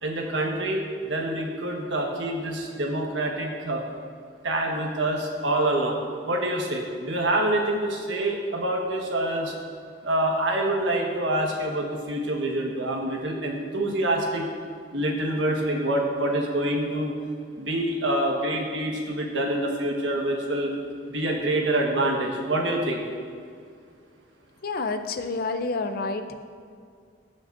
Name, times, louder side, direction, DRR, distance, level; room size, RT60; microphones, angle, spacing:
voice 1, 0.0-3.8 4.4-6.0 6.2-9.5 10.0-14.5 14.9-17.1 17.6-20.7 21.1-23.0, right 1 dB, 85° right, 0 dB, 1.4 m, -26 dB
voice 2, 24.6-26.3, left 3 dB, 55° left, 8 dB, 0.6 m, -29 dB
17.5 x 6.1 x 2.6 m, 2.2 s
head